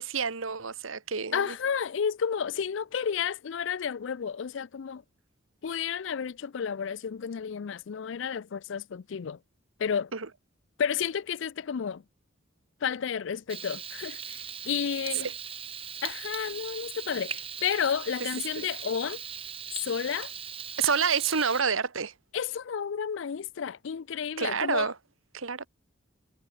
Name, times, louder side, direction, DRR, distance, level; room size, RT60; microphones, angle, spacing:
voice 1, 0.0-1.5 10.1-10.3 15.2-15.3 18.6-18.7 20.8-22.1 24.4-24.9 25.3-25.7, right 6 dB, 85° right, 1.4 m, -28 dB
voice 2, 1.3-5.0 5.6-9.4 9.8-10.1 10.8-12.0 12.8-15.3 16.0-19.2 19.7-20.3 22.3-24.9, left 7 dB, 65° left, 0.4 m, -31 dB
Frying (food), 13.5-21.6, right 8 dB, 25° right, 1.3 m, -39 dB
head